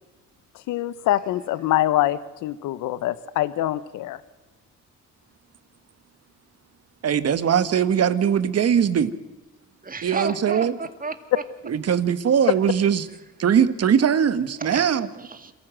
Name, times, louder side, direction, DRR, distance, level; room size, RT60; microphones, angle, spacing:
voice 1, 0.7-4.2 12.5-12.6, left 14 dB, 85° left, 16 dB, 0.9 m, -24 dB
voice 2, 7.0-9.1 10.0-10.8 11.7-13.0 13.4-15.1, right 8 dB, 55° right, 13 dB, 1.6 m, -21 dB
voice 3, 9.8-11.4 14.7-15.5, right 4 dB, 30° right, 9 dB, 2.3 m, -32 dB
28.0 x 14.5 x 7.7 m, 1.1 s
cardioid pair, 90°, 30 cm